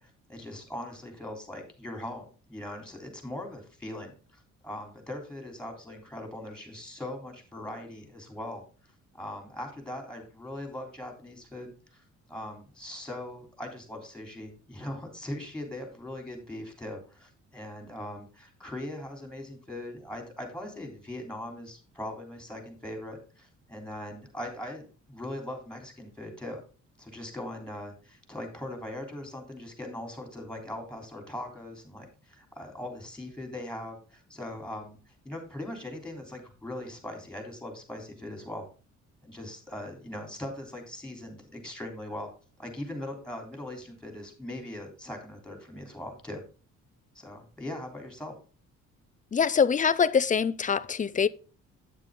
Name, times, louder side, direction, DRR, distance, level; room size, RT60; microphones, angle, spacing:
voice 1, 0.0-26.6 27.0-38.7 39.2-42.3 42.6-46.4 47.2-48.3, left 1 dB, 5° left, 3.3 m, -40 dB
voice 2, 49.3-51.3, left 6 dB, 25° left, 0.5 m, -24 dB
9.1 x 7.4 x 3.7 m
cardioid pair, 90°, 30 cm